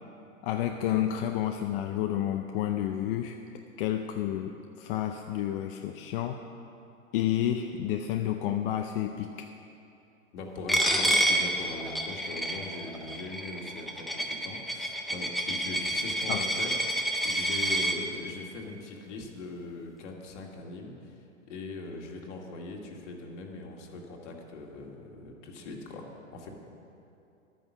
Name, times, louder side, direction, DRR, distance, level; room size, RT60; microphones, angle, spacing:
voice 1, 0.4-3.4 3.8-6.4 7.1-9.5 16.3-16.5, left 11 dB, 45° left, 5 dB, 0.6 m, -30 dB
voice 2, 10.3-21.1 21.5-26.5, left 2 dB, 60° left, 0 dB, 2.2 m, -41 dB
Coin (dropping), 10.7-18.0, right 1 dB, ahead, 0.4 m, -29 dB
11.0 x 9.2 x 6.1 m, 2.7 s
hypercardioid pair, 115°, 40 cm